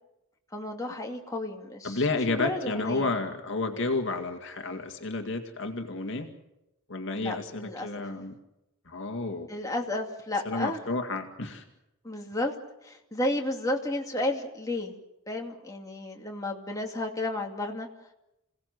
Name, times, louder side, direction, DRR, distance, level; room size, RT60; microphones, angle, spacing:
voice 1, 0.5-2.0 2.3-3.1 7.1-8.1 9.5-10.8 12.0-12.5 12.8-14.9 15.3-17.9, left 1 dB, 15° left, 1 dB, 2.5 m, -32 dB
voice 2, 1.8-6.3 6.9-8.3 8.9-9.5 10.5-11.6, left 3 dB, 60° left, 4 dB, 2.2 m, -31 dB
28.0 x 17.5 x 7.9 m, 0.90 s
head